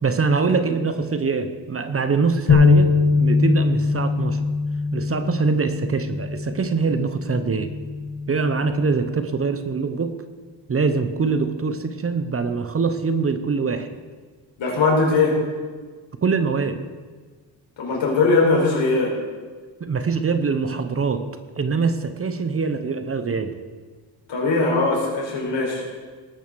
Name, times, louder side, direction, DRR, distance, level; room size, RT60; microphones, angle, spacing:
voice 1, 0.0-2.9 3.2-4.4 4.9-7.7 8.3-10.1 10.7-13.9 16.2-16.8 19.8-21.2 21.6-23.5, right 4 dB, 30° right, 10 dB, 0.9 m, -23 dB
sound 1, 2.5-8.7, left 4 dB, 50° left, 3.1 m, -22 dB
voice 2, 14.6-15.4 17.8-19.1 24.3-25.8, left 3 dB, 85° left, -2 dB, 4.6 m, -20 dB
19.0 x 6.4 x 6.8 m, 1.5 s
wide cardioid pair, 140°, 44 cm